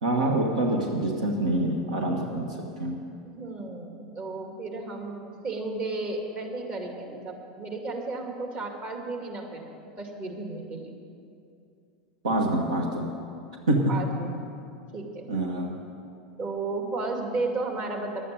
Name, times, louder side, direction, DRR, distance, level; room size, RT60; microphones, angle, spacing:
voice 1, 0.0-2.5 2.8-3.0 12.2-13.1 13.7-13.8 15.3-15.7, right 1 dB, 85° right, 1 dB, 1.3 m, -26 dB
voice 2, 3.2-9.7 10.0-11.0 13.9-14.4 14.9-15.3 16.4-18.3, right 3 dB, 40° right, 1 dB, 2.4 m, -33 dB
11.5 x 8.4 x 8.8 m, 2.5 s
hypercardioid pair, 95°, 3 cm